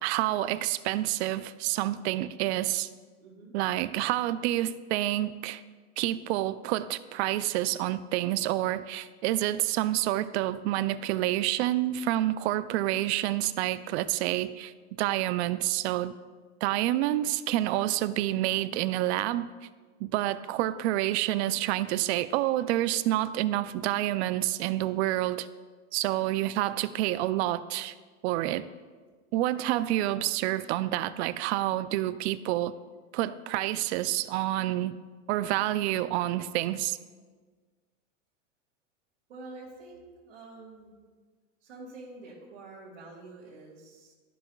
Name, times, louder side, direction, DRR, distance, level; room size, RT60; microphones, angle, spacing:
voice 1, 0.0-2.9 3.5-5.6 6.0-14.7 15.0-16.1 16.6-19.5 20.0-25.5 25.9-27.9 28.2-28.7 29.3-32.7 33.1-35.0 35.3-37.0, right 14 dB, 60° right, 15 dB, 0.5 m, -28 dB
voice 2, 3.2-3.5 39.3-40.9 41.6-44.1, right 2 dB, 90° right, -7 dB, 2.2 m, -47 dB
13.0 x 5.8 x 2.3 m, 1.4 s
supercardioid pair, 135°, 38 cm